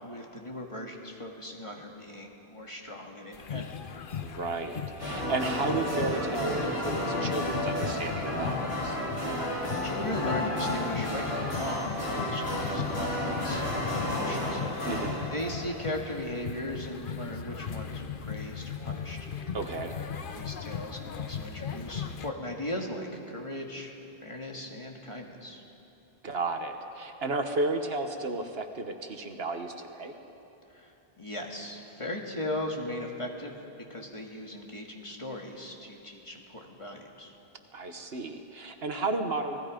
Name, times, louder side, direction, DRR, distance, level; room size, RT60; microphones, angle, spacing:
voice 1, 0.0-3.8 9.8-15.0 15.3-19.3 20.2-23.9 24.2-25.6 30.7-33.6 33.9-37.3, left 1 dB, 30° left, 0 dB, 2.1 m, -38 dB
sound 1, 3.3-22.3, left 7 dB, 55° left, 1.0 m, -38 dB
voice 2, 4.2-9.0 14.8-15.2 19.5-19.9 26.2-30.1 37.7-39.6, right 3 dB, 70° right, 6 dB, 1.5 m, -33 dB
sound 2, 5.0-16.1, left 1 dB, 75° left, 5.0 m, -32 dB
28.5 x 19.0 x 5.2 m, 2.9 s
omnidirectional pair, 1.1 m